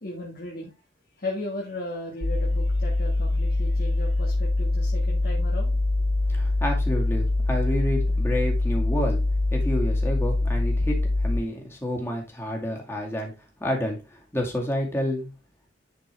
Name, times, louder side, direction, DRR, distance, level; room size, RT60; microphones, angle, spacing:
voice 1, 0.0-0.7 1.1-5.7, left 1 dB, 50° left, -2 dB, 1.7 m, -36 dB
sound 1, 2.2-11.4, left 2 dB, 35° left, 0.5 m, -24 dB
voice 2, 6.3-9.2 9.5-11.0 11.2-13.3 13.6-15.3, equal, 15° left, 0 dB, 2.2 m, -29 dB
10.0 x 4.6 x 3.4 m, 0.27 s
head